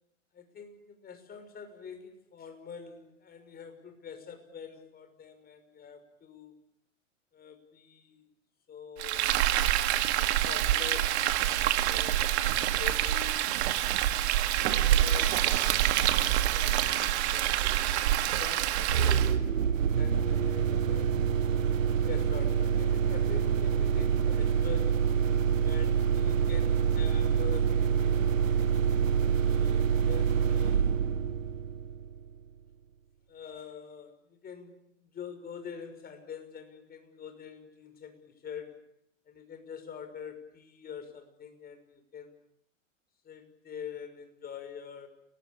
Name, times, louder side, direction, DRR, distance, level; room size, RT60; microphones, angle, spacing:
voice 1, 0.3-6.5 7.3-8.2 8.7-9.5 10.2-12.2 12.8-13.6 14.6-15.7 16.4-17.6 18.2-19.4 19.8-21.2 22.0-25.2 25.6-28.5 29.4-31.0 33.3-38.9 39.3-42.3 43.2-45.1, left 7 dB, 25° left, 7 dB, 6.1 m, -45 dB
Frying (food), 9.0-19.4, right 12 dB, 55° right, 2.3 m, -26 dB
sound 1, 18.9-32.4, right 7 dB, 75° right, 1.4 m, -26 dB
29.5 x 21.0 x 8.7 m, 0.72 s
hypercardioid pair, 105°, 39 cm